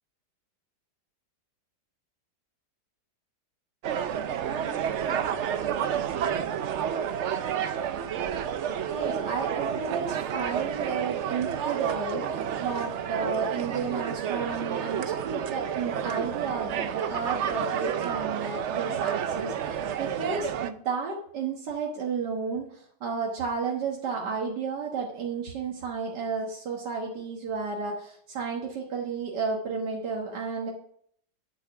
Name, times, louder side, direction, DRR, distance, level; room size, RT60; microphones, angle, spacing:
sound 1, 3.8-20.7, right 8 dB, 65° right, 0.7 m, -30 dB
voice 1, 8.9-30.7, right 5 dB, 80° right, -1 dB, 1.9 m, -32 dB
9.7 x 6.9 x 5.9 m, 0.63 s
omnidirectional pair, 1.8 m